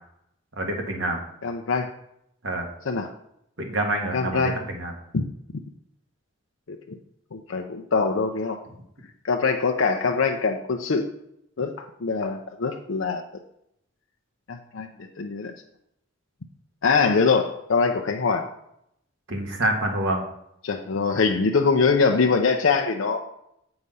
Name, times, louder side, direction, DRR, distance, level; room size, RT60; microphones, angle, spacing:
voice 1, 0.6-1.2 2.4-2.7 3.6-4.9 19.3-20.2, right 1 dB, 70° right, 3 dB, 1.6 m, -27 dB
voice 2, 1.4-1.9 2.9-3.1 4.1-4.6 5.1-5.3 6.7-7.0 7.3-8.6 9.2-11.1 11.6-11.7 12.0-13.2 14.5-14.9 15.2-15.5 16.8-18.5 20.6-23.2, left 4 dB, 75° left, 3 dB, 0.6 m, -23 dB
7.9 x 4.9 x 5.5 m, 0.77 s
head